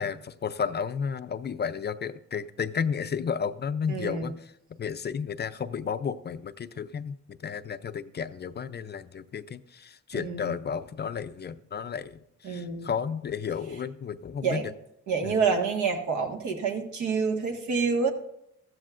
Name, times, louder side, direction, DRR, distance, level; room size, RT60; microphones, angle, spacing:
voice 1, 0.0-4.3 4.8-12.2 12.5-14.6 15.2-15.4, left 6 dB, 35° left, 12 dB, 0.5 m, -32 dB
voice 2, 3.9-4.3 10.1-10.5 12.4-12.9 14.4-14.7 15.1-18.1, right 5 dB, 70° right, 3 dB, 1.7 m, -28 dB
14.0 x 14.0 x 2.5 m, 0.77 s
cardioid pair, 90°, 30 cm